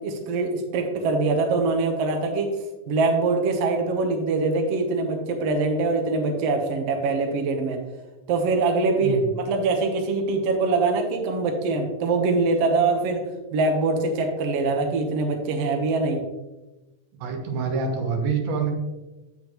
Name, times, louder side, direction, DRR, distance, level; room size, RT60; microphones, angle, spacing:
voice 1, 0.0-2.5 2.9-7.8 8.3-13.2 13.5-16.2, right 3 dB, 65° right, 3 dB, 1.8 m, -23 dB
voice 2, 17.2-18.7, right 5 dB, 80° right, 3 dB, 2.6 m, -26 dB
8.6 x 7.1 x 3.0 m, 1.1 s
omnidirectional pair, 3.6 m